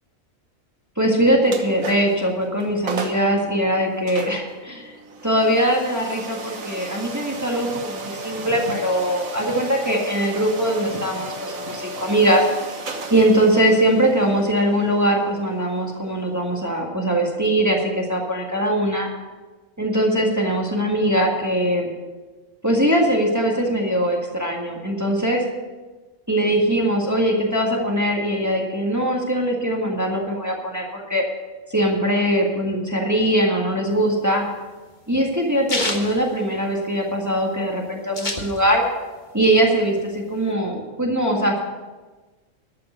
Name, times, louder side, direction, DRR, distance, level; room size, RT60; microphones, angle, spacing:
voice 1, 1.0-4.9 5.2-12.4 13.1-19.1 19.8-21.9 22.6-25.4 26.3-31.2 31.7-34.4 35.1-38.8 39.3-41.6, right 1 dB, 15° right, -1 dB, 1.8 m, -21 dB
sound 1, 1.5-2.2 2.6-2.7 2.9-3.3 4.1-16.8, right 2 dB, 90° right, 1.7 m, -34 dB
sound 2, 34.0-37.1 37.4-37.5 37.7-39.0 39.4-40.5, left 2 dB, 35° left, 1.6 m, -29 dB
12.5 x 6.8 x 8.0 m, 1.3 s
omnidirectional pair, 1.4 m